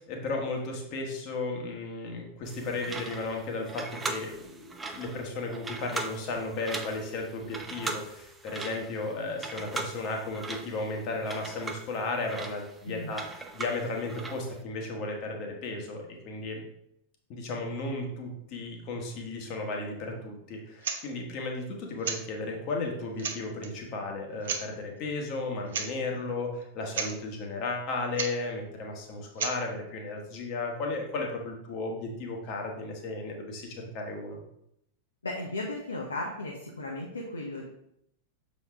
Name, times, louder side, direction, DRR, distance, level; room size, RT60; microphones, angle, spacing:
voice 1, 0.1-13.2 13.5-16.6 17.3-34.4, left 2 dB, 40° left, 1 dB, 1.5 m, -34 dB
sound 1, 2.5-14.6, right 3 dB, 15° right, 0.7 m, -40 dB
voice 2, 12.8-13.2 35.2-37.6, left 2 dB, 75° left, -1 dB, 0.9 m, -35 dB
sound 2, 20.8-21.0 22.0-22.2 22.8-22.9 23.2-23.7 24.4-24.7 25.7-25.9 26.2-26.3 26.6-26.7 26.9-27.2 28.1-28.3 29.4-29.6, right 6 dB, 60° right, 0.8 m, -32 dB
6.8 x 4.3 x 3.5 m, 0.76 s
figure-of-eight pair, 90°, 0 cm